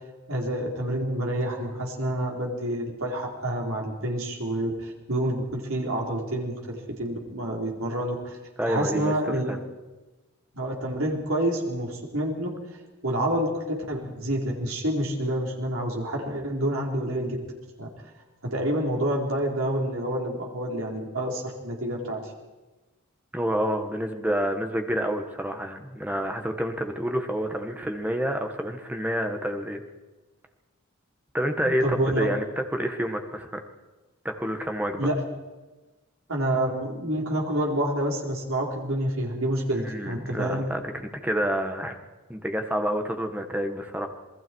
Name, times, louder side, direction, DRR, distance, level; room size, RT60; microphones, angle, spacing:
voice 1, 0.3-8.4 8.6-9.5 10.5-12.5 13.0-17.4 17.8-17.9 18.5-22.3 31.6-32.3 35.0-35.2 36.3-40.7, right 1 dB, 65° right, -1 dB, 4.6 m, -28 dB
voice 2, 8.6-9.6 23.3-29.8 31.3-32.4 32.7-33.6 34.2-35.1 39.7-42.0 42.3-44.1, equal, 5° right, 5 dB, 1.6 m, -28 dB
27.5 x 20.5 x 4.8 m, 1.2 s
head